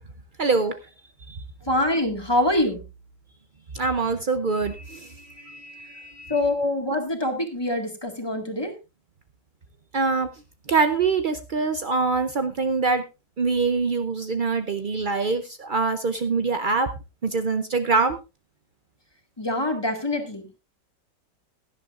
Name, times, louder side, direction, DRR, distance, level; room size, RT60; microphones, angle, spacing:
voice 1, 0.4-0.7 1.3-1.4 3.7-6.4 9.9-10.3 10.7-13.0 13.4-16.9 17.2-18.2, right 4 dB, 85° right, 9 dB, 0.4 m, -24 dB
voice 2, 1.6-2.8 6.3-8.7 19.4-20.6, left 1 dB, 15° left, 4 dB, 1.8 m, -25 dB
17.0 x 11.0 x 2.5 m, 0.27 s
omnidirectional pair, 1.9 m